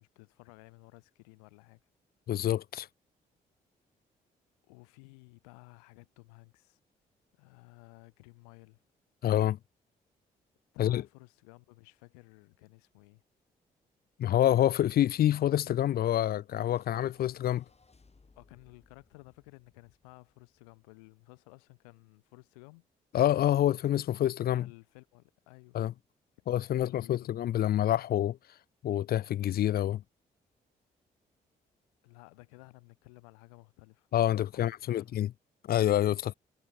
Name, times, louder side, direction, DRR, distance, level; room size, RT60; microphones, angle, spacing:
voice 1, 0.0-1.8 4.7-6.8 7.3-8.8 10.7-13.2 18.4-22.9 24.5-25.8 26.7-27.3 32.0-34.1 34.5-35.2, left 30 dB, 90° left, 7.8 m, -55 dB
voice 2, 2.3-2.9 9.2-9.6 10.8-11.0 14.2-17.6 23.1-24.7 25.7-25.9 26.5-28.4 28.8-30.0 34.1-35.3 35.7-36.3, left 12 dB, 55° left, 0.4 m, -27 dB
sound 1, 16.6-21.1, left 4 dB, 35° left, 4.5 m, -65 dB
hypercardioid pair, 45°, 19 cm